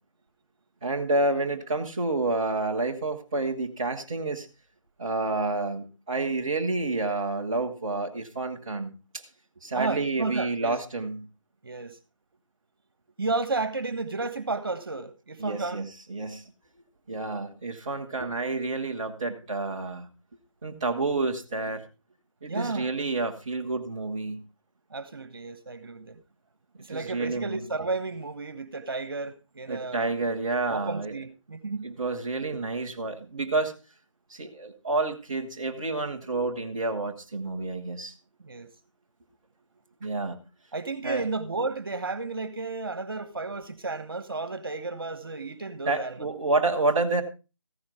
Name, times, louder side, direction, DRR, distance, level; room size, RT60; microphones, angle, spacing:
voice 1, 0.8-4.5 5.0-9.3 9.6-11.3 15.4-15.8 16.1-16.5 17.1-20.1 20.6-21.8 22.4-24.5 26.9-27.6 29.7-31.2 31.8-33.7 34.3-38.1 40.0-40.4 41.0-41.3 45.9-47.2, right 3 dB, 10° right, 0.6 m, -29 dB
voice 2, 9.7-10.7 11.6-11.9 13.2-15.9 22.5-22.9 24.9-26.2 26.8-30.1 30.7-31.9 38.4-38.7 40.7-46.3, right 3 dB, 45° right, 1.4 m, -32 dB
14.5 x 10.5 x 3.7 m
figure-of-eight pair, 165°, 16 cm